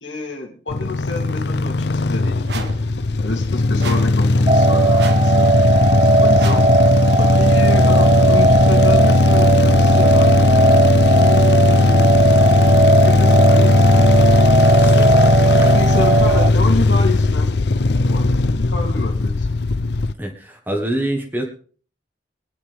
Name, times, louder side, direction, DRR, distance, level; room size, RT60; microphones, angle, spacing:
voice 1, 0.0-2.7 3.2-5.5 5.9-6.7 7.1-10.5 11.0-12.1 13.0-14.5 15.3-19.5, left 2 dB, 90° left, -1 dB, 3.0 m, -29 dB
sound 1, 0.7-20.1, left 3 dB, 65° left, 0.6 m, -16 dB
sound 2, 2.5-2.8 3.8-4.2 5.0-5.3 6.4-6.7, right 4 dB, 65° right, 1.7 m, -32 dB
sound 3, 4.5-16.5, right 3 dB, 30° right, 0.5 m, -17 dB
voice 2, 14.8-15.4 20.2-21.4, right 1 dB, 10° right, 2 dB, 1.5 m, -25 dB
22.5 x 10.0 x 3.5 m, 0.43 s
head